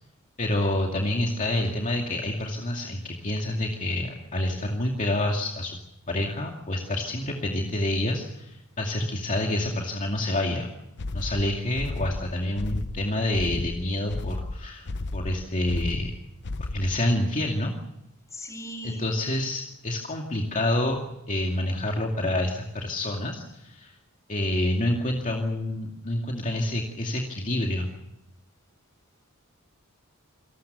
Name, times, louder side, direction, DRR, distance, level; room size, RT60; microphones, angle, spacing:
voice 1, 0.4-5.8 6.1-10.7 11.1-14.9 15.1-16.1 16.7-17.7 18.8-23.9 24.3-27.9, left 1 dB, 35° left, 1 dB, 2.4 m, -28 dB
sound 1, 11.0-17.0, left 2 dB, 55° left, 0.8 m, -33 dB
voice 2, 18.3-19.2, left 1 dB, 15° left, 3 dB, 6.8 m, -39 dB
27.5 x 20.0 x 6.8 m, 0.88 s
head